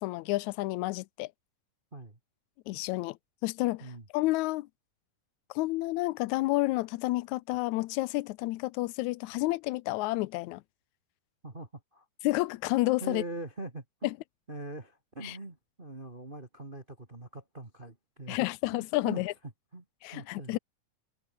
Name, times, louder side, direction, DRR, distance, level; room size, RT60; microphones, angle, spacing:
voice 1, 0.0-1.3 2.7-3.2 3.4-3.9 4.1-4.7 5.5-10.6 12.2-13.2 15.2-15.4 18.3-19.3 20.0-20.6, left 19 dB, 85° left, 1.6 m, -30 dB
voice 2, 11.4-12.1 13.0-14.1 14.5-18.5 18.7-19.2 19.7-19.8 20.1-20.6, right 2 dB, 15° right, 2.3 m, -42 dB
omnidirectional pair, 4.0 m